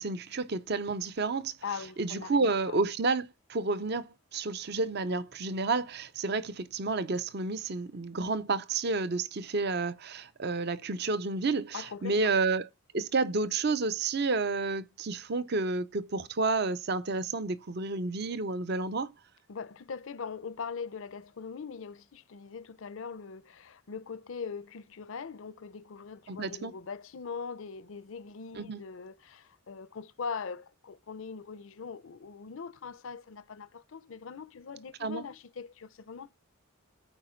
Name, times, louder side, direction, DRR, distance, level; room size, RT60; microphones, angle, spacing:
voice 1, 0.0-1.5 2.0-12.7 12.9-19.1 26.3-26.7 28.6-28.8 35.0-35.2, right 3 dB, 50° right, 0.6 m, -30 dB
voice 2, 1.6-2.7 11.7-12.3 19.5-36.3, left 5 dB, 65° left, 0.6 m, -41 dB
13.0 x 5.0 x 4.4 m
head